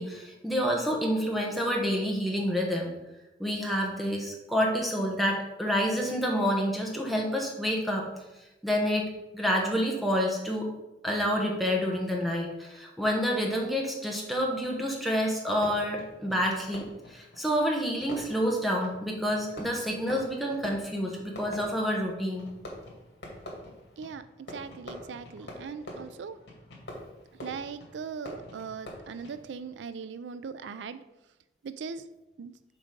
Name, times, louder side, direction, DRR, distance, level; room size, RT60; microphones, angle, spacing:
voice 1, 0.0-2.9 3.4-8.1 8.6-9.1 9.3-10.7 11.0-22.5, equal, ahead, -1 dB, 1.1 m, -28 dB
Fireworks, 15.5-29.7, left 1 dB, 75° left, 2.3 m, -46 dB
voice 2, 24.5-26.4 27.4-31.0 31.6-32.0 32.4-32.5, right 5 dB, 85° right, 13 dB, 0.4 m, -39 dB
7.2 x 4.0 x 5.2 m, 0.97 s
head